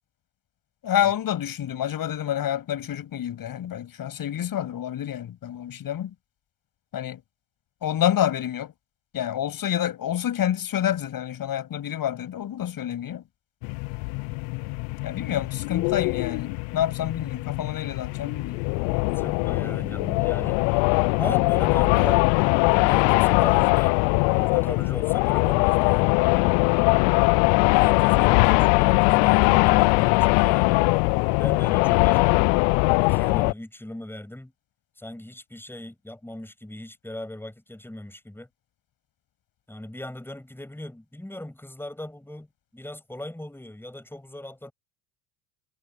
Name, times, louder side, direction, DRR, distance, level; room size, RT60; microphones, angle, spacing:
voice 1, 0.8-6.1 6.9-7.2 7.8-8.7 9.1-13.2 15.0-18.6 28.2-28.7, left 11 dB, 50° left, 7.9 m, -28 dB
sound 1, 13.6-33.5, left 31 dB, 65° left, 0.6 m, -21 dB
voice 2, 19.1-20.6 21.2-22.3 22.7-24.0 24.4-26.2 27.7-30.8 31.4-32.5 33.0-34.5 35.0-38.5 39.7-42.5 42.7-44.7, left 1 dB, 5° left, 6.8 m, -38 dB
hypercardioid pair, 80°, 45 cm